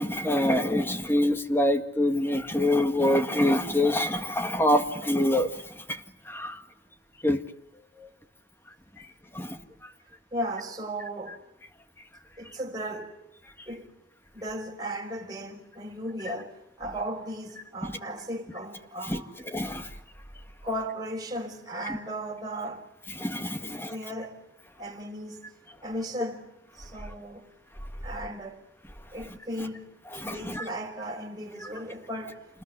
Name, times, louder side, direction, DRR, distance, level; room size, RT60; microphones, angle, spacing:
voice 1, 0.0-6.0 6.3-6.6 7.2-7.4 8.0-8.1 9.0-9.1 9.3-9.6 17.8-17.9 19.1-19.9 23.2-23.9 30.2-30.7, left 1 dB, 15° left, 1.8 m, -26 dB
voice 2, 10.3-11.4 12.4-13.1 13.7-13.9 14.3-19.3 20.6-22.8 23.6-24.4 24.8-25.5 25.8-26.5 26.7-27.5 28.0-28.7 29.1-29.9 30.3-32.4, right 1 dB, 20° right, 5.2 m, -36 dB
28.5 x 20.0 x 9.8 m
head